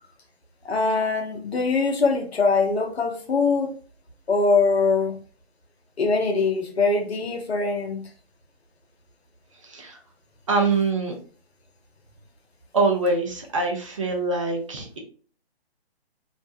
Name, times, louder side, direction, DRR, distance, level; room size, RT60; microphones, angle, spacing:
voice 1, 0.6-3.7 4.3-5.2 6.0-8.0, left 4 dB, 75° left, 3 dB, 0.8 m, -22 dB
voice 2, 9.6-10.0 10.5-11.1 12.7-15.0, right 3 dB, 30° right, 1 dB, 0.4 m, -24 dB
2.5 x 2.0 x 2.6 m, 0.41 s
figure-of-eight pair, 140°, 32 cm